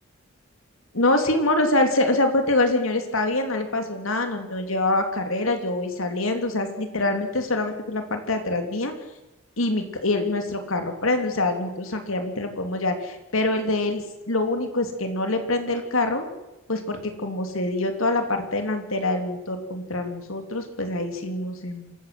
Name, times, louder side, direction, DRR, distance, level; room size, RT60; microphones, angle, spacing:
voice 1, 0.9-8.9 9.6-16.3 16.7-21.9, left 2 dB, 75° left, 6 dB, 3.0 m, -25 dB
26.5 x 14.5 x 7.7 m, 0.97 s
head